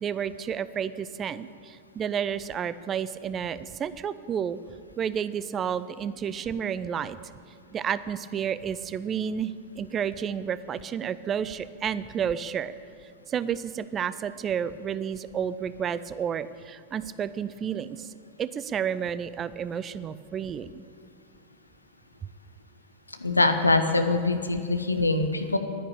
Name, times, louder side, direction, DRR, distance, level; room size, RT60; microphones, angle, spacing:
voice 1, 0.0-4.6 5.0-7.2 7.7-12.7 13.3-18.1 18.4-20.8, right 8 dB, 25° right, 15 dB, 0.5 m, -31 dB
voice 2, 23.2-25.6, left 2 dB, 80° left, 7 dB, 1.0 m, -23 dB
11.0 x 10.0 x 8.7 m, 2.3 s
figure-of-eight pair, 90°, 0 cm